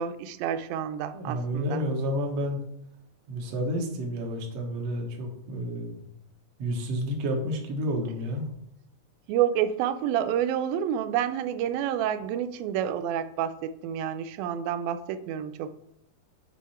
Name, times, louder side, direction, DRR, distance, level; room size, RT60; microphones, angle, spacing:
voice 1, 0.0-1.8 9.3-15.8, right 9 dB, 85° right, 11 dB, 2.3 m, -29 dB
voice 2, 1.1-2.6 3.3-6.0 6.6-8.5, equal, 55° right, 0 dB, 2.1 m, -30 dB
8.2 x 5.4 x 4.3 m, 0.75 s
omnidirectional pair, 4.2 m